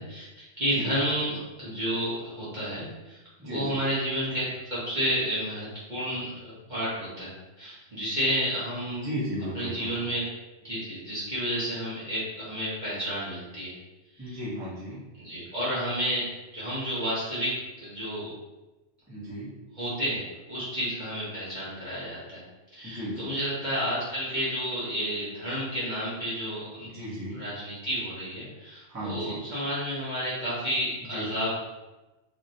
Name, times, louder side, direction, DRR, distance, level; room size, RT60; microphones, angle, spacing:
voice 1, 0.0-7.3 7.6-9.1 9.5-10.2 10.6-13.7 14.2-14.4 15.2-16.2 16.5-17.5 17.8-18.3 19.8-22.4 22.7-26.9 27.3-31.5, equal, 40° right, -9 dB, 1.1 m, -31 dB
voice 2, 3.4-3.8 8.9-9.9 14.2-15.0 19.1-19.5 22.8-23.4 26.8-27.4 28.9-29.4 31.1-31.4, equal, 15° right, -10 dB, 1.0 m, -35 dB
3.0 x 2.8 x 2.6 m, 1.1 s
omnidirectional pair, 1.2 m